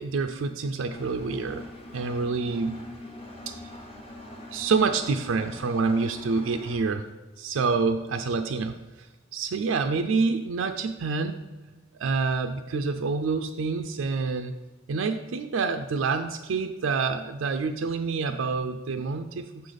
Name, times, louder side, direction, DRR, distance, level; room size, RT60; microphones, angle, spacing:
voice 1, 0.0-1.7 1.9-2.8 3.5-3.6 4.5-7.0 7.4-9.1 9.3-11.4 11.9-14.6 14.9-19.5, right 4 dB, 75° right, 7 dB, 0.4 m, -27 dB
Engine, 0.9-6.8, left 1 dB, 30° left, 1.0 m, -43 dB
6.9 x 3.9 x 5.0 m, 1.2 s
head